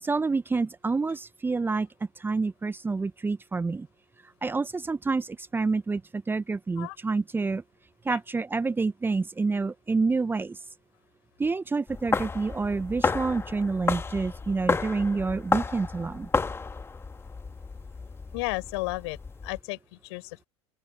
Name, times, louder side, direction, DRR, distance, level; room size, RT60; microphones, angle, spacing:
voice 1, 0.0-1.9 2.2-3.9 4.4-7.6 8.0-10.6 11.4-16.3, right 4 dB, 15° right, 1.3 m, -28 dB
sound 1, 11.9-19.6, left 4 dB, 15° left, 2.2 m, -31 dB
voice 2, 18.3-20.5, left 25 dB, 55° left, 4.9 m, -34 dB
open air
figure-of-eight pair, 80°, 16 cm